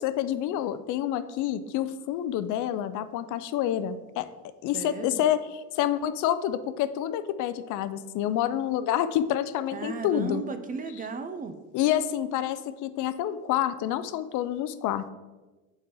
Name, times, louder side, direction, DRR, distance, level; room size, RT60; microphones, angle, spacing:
voice 1, 0.0-4.3 4.6-10.4 11.7-15.1, left 11 dB, 65° left, 12 dB, 0.5 m, -28 dB
voice 2, 4.7-5.2 9.7-11.5, right 4 dB, 25° right, 8 dB, 0.4 m, -35 dB
8.0 x 4.2 x 3.8 m, 1.2 s
cardioid pair, 125°, 32 cm